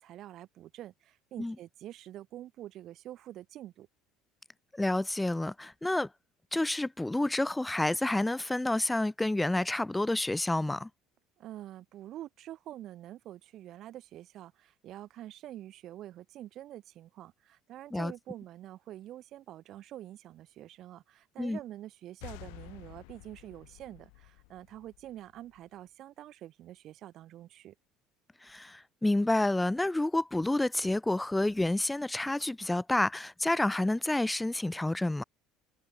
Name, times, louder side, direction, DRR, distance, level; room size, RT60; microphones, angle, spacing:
voice 1, 0.0-3.9 11.4-27.7, right 13 dB, 40° right, 4.3 m, -46 dB
voice 2, 4.7-6.1 6.5-10.9 17.9-18.1 21.4-21.6 28.4-35.2, left 2 dB, 5° left, 1.8 m, -29 dB
sound 1, 22.2-25.7, left 37 dB, 90° left, 6.4 m, -51 dB
cardioid pair, 170°, 0 cm